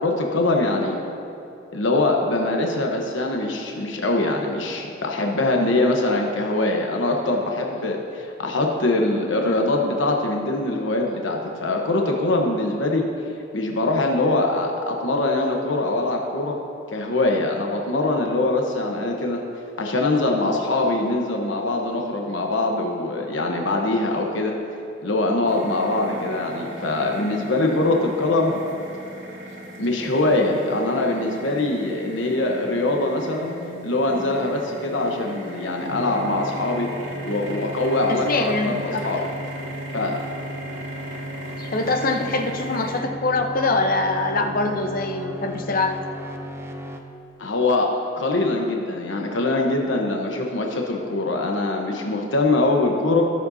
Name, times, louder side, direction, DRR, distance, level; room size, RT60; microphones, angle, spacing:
voice 1, 0.0-1.0 1.7-13.0 13.5-16.6 16.9-19.4 19.8-24.5 25.0-28.6 29.8-33.5 33.8-36.9 37.2-39.3 39.9-40.2 47.4-53.2, left 2 dB, 80° left, 1 dB, 1.1 m, -23 dB
sound 1, 25.5-43.0, right 1 dB, 85° right, 1.8 m, -38 dB
sound 2, 35.9-47.0, equal, 15° right, 0.7 m, -36 dB
voice 2, 38.1-39.0 41.6-46.0, left 3 dB, 50° left, 4 dB, 0.9 m, -24 dB
19.0 x 7.5 x 2.8 m, 2.9 s
head